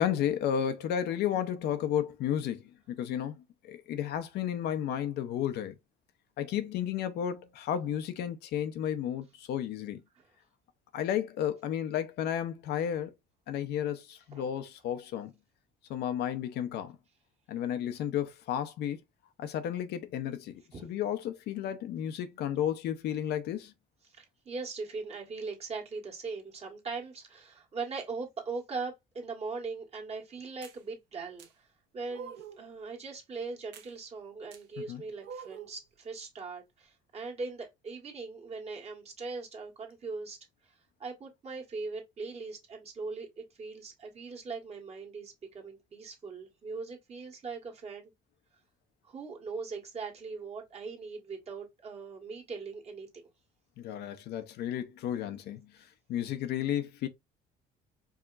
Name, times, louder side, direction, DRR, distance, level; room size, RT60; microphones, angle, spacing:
voice 1, 0.0-2.6 2.9-5.7 6.4-10.0 10.9-13.1 13.5-15.3 15.9-17.0 17.5-19.0 19.4-23.7 34.9-35.0 53.8-55.7 56.1-57.1, left 10 dB, 75° left, 0.7 m, -32 dB
voice 2, 14.3-14.6 20.7-20.9 24.1-31.5 31.9-40.4 41.0-48.1 49.0-53.1, right 4 dB, 40° right, 1.6 m, -40 dB
sound 1, 30.6-30.8 31.4-31.5 32.1-32.7 33.7-33.9 34.5-34.6 35.2-35.8, right 7 dB, 90° right, 0.8 m, -45 dB
4.8 x 2.9 x 2.4 m
cardioid pair, 110°, 17 cm